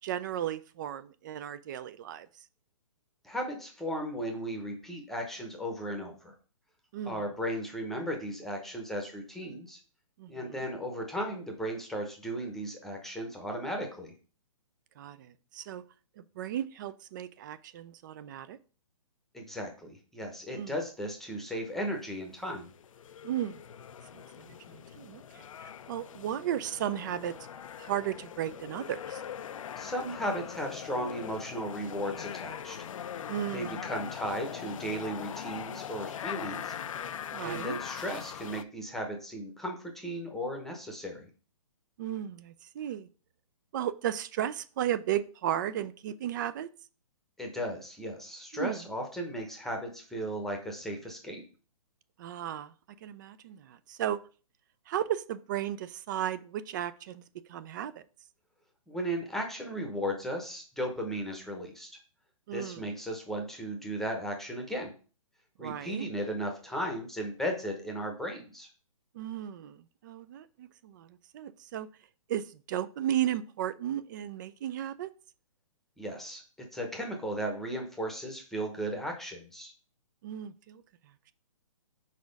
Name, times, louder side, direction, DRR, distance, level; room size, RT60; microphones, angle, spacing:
voice 1, 0.0-2.3 6.9-7.2 10.2-10.7 15.0-15.8 16.2-18.6 20.5-20.7 23.2-23.6 24.1-27.3 27.8-29.2 33.3-33.9 37.3-37.8 42.0-43.1 43.7-46.7 48.5-48.8 52.2-52.7 53.0-54.2 54.9-57.9 62.5-62.9 65.6-66.1 69.1-71.9 72.3-75.1 80.2-80.8, right 11 dB, 35° right, 14 dB, 0.4 m, -35 dB
voice 2, 3.2-6.3 7.0-9.8 10.3-14.1 19.3-22.7 29.7-32.8 33.5-36.7 37.4-41.3 47.4-51.4 58.9-61.9 62.5-64.9 65.6-68.7 76.0-79.7, equal, ahead, 2 dB, 0.9 m, -36 dB
sound 1, 22.5-38.6, left 9 dB, 70° left, 0.5 m, -41 dB
4.7 x 4.2 x 5.2 m, 0.38 s
hypercardioid pair, 145°, 18 cm